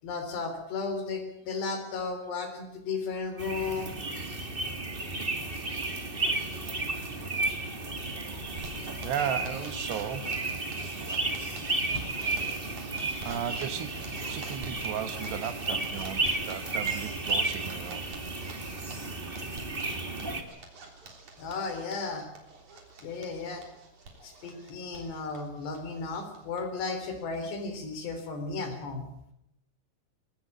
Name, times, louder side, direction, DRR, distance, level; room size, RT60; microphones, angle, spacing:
voice 1, 0.0-4.0 6.1-6.2 7.4-8.4 11.8-12.0 21.4-22.2 23.0-23.6 24.2-29.1, left 4 dB, 85° left, 7 dB, 5.8 m, -35 dB
sound 1, 3.4-20.4, right 2 dB, 30° right, 0.9 m, -33 dB
Zipper (clothing), 8.4-26.6 26.9-27.0 27.3-27.4 27.7-28.2, right 3 dB, 50° right, 4.6 m, -47 dB
voice 2, 9.0-10.3 13.2-18.1, right 9 dB, 85° right, 10 dB, 3.5 m, -35 dB
21.0 x 18.5 x 8.8 m, 0.78 s
omnidirectional pair, 4.7 m